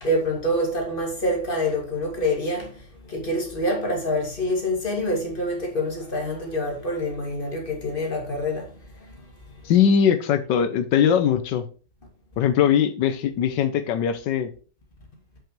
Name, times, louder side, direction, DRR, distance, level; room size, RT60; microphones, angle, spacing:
voice 1, 0.0-9.2, left 1 dB, 30° left, 2.7 m, -26 dB
voice 2, 9.6-11.6 12.4-14.5, left 8 dB, 90° left, 1.5 m, -20 dB
7.8 x 7.0 x 3.2 m
omnidirectional pair, 1.9 m